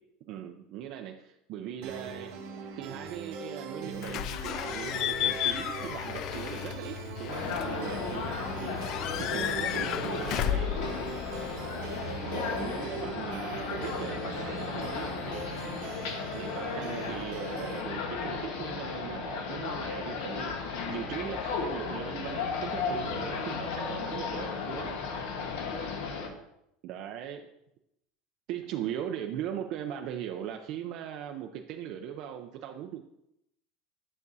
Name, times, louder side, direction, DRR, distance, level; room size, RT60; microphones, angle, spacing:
voice 1, 0.3-2.3 2.8-8.8 9.2-10.8 12.2-15.5 16.3-25.0 26.8-27.5 28.5-33.0, right 10 dB, 55° right, 3 dB, 0.5 m, -39 dB
sound 1, 1.8-17.8, right 5 dB, 85° right, 1.4 m, -41 dB
Slam / Squeak / Alarm, 4.0-12.0, left 11 dB, 50° left, 0.3 m, -34 dB
sound 2, 7.3-26.3, left 5 dB, 75° left, 1.2 m, -35 dB
voice 2, 8.9-9.4 10.6-10.9 25.0-26.4, left 2 dB, 25° left, 2 dB, 1.5 m, -52 dB
11.0 x 5.9 x 2.7 m, 0.82 s
supercardioid pair, 145°, 0 cm